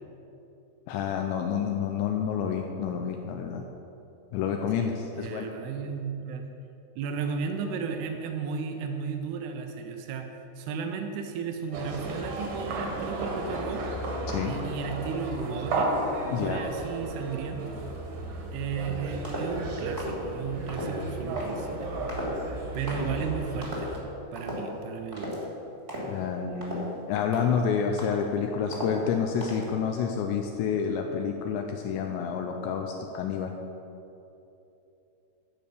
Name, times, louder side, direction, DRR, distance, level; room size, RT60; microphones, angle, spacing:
voice 1, 0.9-3.6 4.3-5.5 14.3-14.5 16.3-16.6 26.0-33.5, left 7 dB, 80° left, 3 dB, 2.7 m, -29 dB
voice 2, 4.8-6.5 7.0-10.3 10.6-13.8 14.4-15.9 16.3-17.8 18.5-21.9 22.7-23.9 24.3-25.3, right 6 dB, 85° right, 5 dB, 2.3 m, -34 dB
sound 1, 11.7-24.0, right 2 dB, 65° right, 2.3 m, -34 dB
sound 2, 19.2-19.6 20.0-20.2 20.7-20.9 21.3-21.6 22.1-22.5 22.9-23.1 23.6-24.0 24.3-24.7 25.1-25.4 25.9-26.2 26.6-26.9 27.3-27.6 28.0-28.4 28.7-29.1 29.4-29.7, equal, 25° right, 1.1 m, -36 dB
12.0 x 5.3 x 8.3 m, 2.9 s
omnidirectional pair, 5.6 m